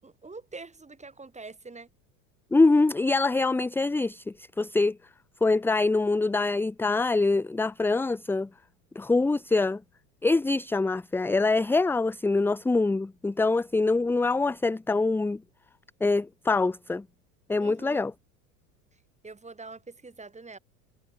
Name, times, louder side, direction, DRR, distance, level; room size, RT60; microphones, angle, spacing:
voice 1, 0.0-1.9 17.6-18.1 19.2-20.6, right 3 dB, 15° right, 7.8 m, -44 dB
voice 2, 2.5-5.0 5.4-8.5 9.0-9.8 10.2-15.4 16.0-17.0 17.5-18.1, left 3 dB, 5° left, 0.5 m, -24 dB
hypercardioid pair, 85°, 45 cm